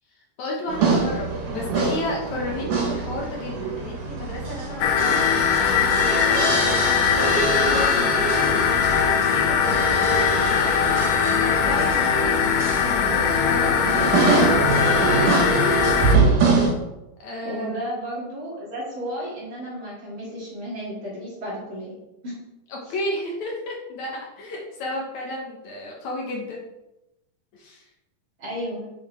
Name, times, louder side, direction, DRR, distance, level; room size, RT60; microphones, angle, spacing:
voice 1, 0.4-1.2 1.5-9.6 10.5-15.7 17.2-17.8 22.7-26.6 27.5-27.9, left 2 dB, 65° left, -2 dB, 2.6 m, -33 dB
sound 1, 0.7-16.7, right 4 dB, 80° right, 3.0 m, -25 dB
sound 2, 4.8-16.2, left 6 dB, 85° left, 2.4 m, -21 dB
voice 2, 17.4-21.9 22.2-22.3 28.4-28.9, equal, 40° right, -7 dB, 3.2 m, -32 dB
8.0 x 6.5 x 3.5 m, 0.94 s
omnidirectional pair, 3.7 m